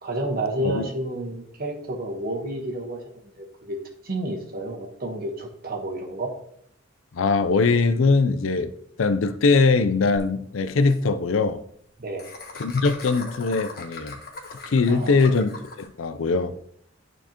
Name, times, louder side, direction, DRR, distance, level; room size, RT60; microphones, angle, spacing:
voice 1, 0.0-3.8 4.0-6.3 12.0-12.2 14.9-15.2, right 1 dB, 50° right, 1.2 m, -30 dB
voice 2, 7.1-8.7 9.0-11.6 12.6-14.2 14.7-16.5, left 4 dB, 90° left, 0.5 m, -21 dB
Laughter, 10.2-10.3 10.5-10.6 10.8-11.0 12.2-15.9, left 3 dB, 50° left, 1.2 m, -39 dB
11.5 x 4.5 x 2.9 m
head